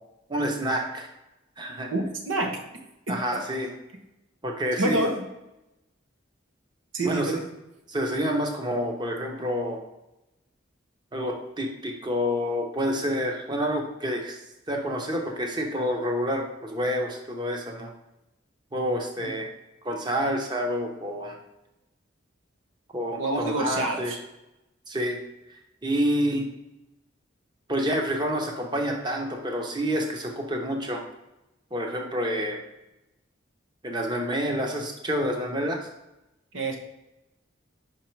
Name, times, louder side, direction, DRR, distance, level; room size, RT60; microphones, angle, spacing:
voice 1, 0.3-1.1 1.6-1.9 3.1-3.7 4.4-5.0 7.0-7.4 7.9-9.8 11.1-14.4 14.7-17.9 18.7-19.5 19.8-21.4 22.9-24.1 24.9-25.2 25.8-26.5 27.7-31.0 31.7-32.6 33.8-35.8, equal, 20° right, 2 dB, 0.9 m, -28 dB
voice 2, 1.9-2.6 3.1-3.2 4.8-5.2 6.9-7.5 19.2-19.3 23.2-24.2 36.5-36.8, right 2 dB, 80° right, 3 dB, 1.1 m, -27 dB
5.4 x 4.5 x 4.6 m, 0.93 s
head